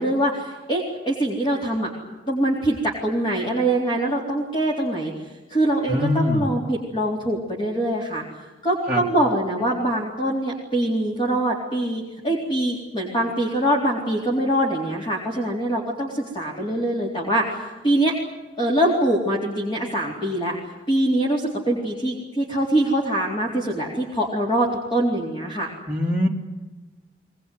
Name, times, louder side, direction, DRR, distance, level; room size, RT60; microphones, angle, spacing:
voice 1, 0.0-1.9 2.3-5.1 5.5-8.2 8.6-18.1 18.6-20.6 20.9-25.7, right 1 dB, 30° left, -3 dB, 4.0 m, -23 dB
voice 2, 5.9-6.4 8.9-9.0 25.9-26.3, left 1 dB, 5° right, -4 dB, 3.7 m, -22 dB
23.0 x 21.0 x 9.5 m, 1.2 s
head